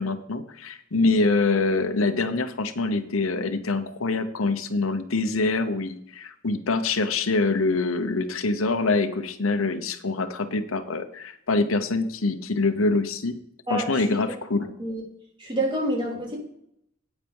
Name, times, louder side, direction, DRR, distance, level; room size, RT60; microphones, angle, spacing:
voice 1, 0.0-13.4 13.7-14.7, left 3 dB, 85° left, 9 dB, 0.9 m, -25 dB
voice 2, 13.7-14.2 14.8-15.0 15.4-16.4, right 1 dB, 25° right, -3 dB, 4.0 m, -28 dB
10.0 x 9.1 x 5.4 m, 0.71 s
head